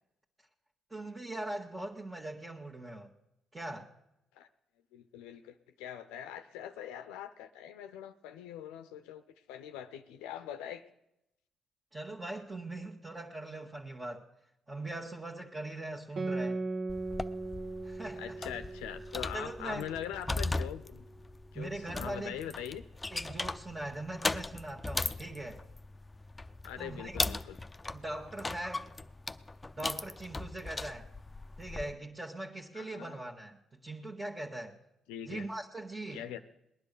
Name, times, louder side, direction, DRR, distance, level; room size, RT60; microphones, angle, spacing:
voice 1, 0.9-3.1 3.5-3.9 11.9-14.2 14.7-16.6 17.8-18.4 19.3-19.9 21.5-22.4 23.1-25.6 26.8-27.4 27.9-28.9 29.8-31.1 31.6-34.8 35.2-36.3, right 2 dB, 25° right, -2 dB, 1.6 m, -41 dB
voice 2, 4.9-9.2 9.5-10.8 18.2-21.1 21.5-22.8 26.6-27.6 32.7-33.2 35.1-35.4 36.1-36.4, left 10 dB, 85° left, 10 dB, 0.6 m, -42 dB
Guitar, 16.2-21.1, right 3 dB, 65° right, 1.1 m, -39 dB
sound 1, 16.9-31.9, left 2 dB, 20° left, 0.6 m, -38 dB
19.5 x 10.5 x 6.6 m, 0.85 s
hypercardioid pair, 50°, 0 cm